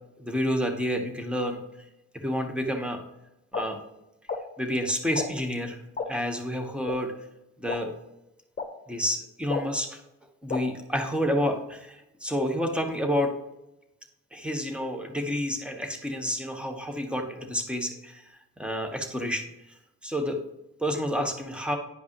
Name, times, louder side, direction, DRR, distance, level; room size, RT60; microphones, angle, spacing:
voice 1, 0.2-1.6 2.1-3.0 3.5-3.8 4.6-5.8 6.1-7.1 7.6-7.9 8.9-10.0 10.4-13.3 14.3-20.4 20.8-21.8, equal, 5° right, 4 dB, 1.3 m, -29 dB
sound 1, 3.5-3.6 4.3-4.4 5.1-5.3 6.0-6.1 6.9-7.0 7.7-7.8 8.6-8.7 9.5-9.6 10.5-10.6, left 5 dB, 25° left, 1.2 m, -30 dB
9.9 x 5.2 x 3.1 m, 0.91 s
cardioid pair, 90°, 30 cm